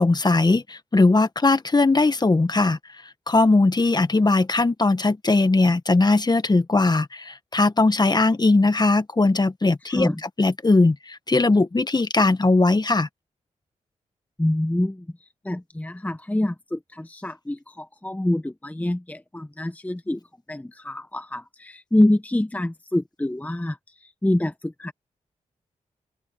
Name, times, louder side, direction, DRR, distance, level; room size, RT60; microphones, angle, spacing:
voice 1, 0.0-2.8 3.3-10.1 10.4-13.1, left 3 dB, 30° left, 1.6 m, -19 dB
voice 2, 9.8-10.2 14.4-20.2 20.5-24.9, left 1 dB, 10° left, 1.1 m, -26 dB
cardioid pair, 50°, 14 cm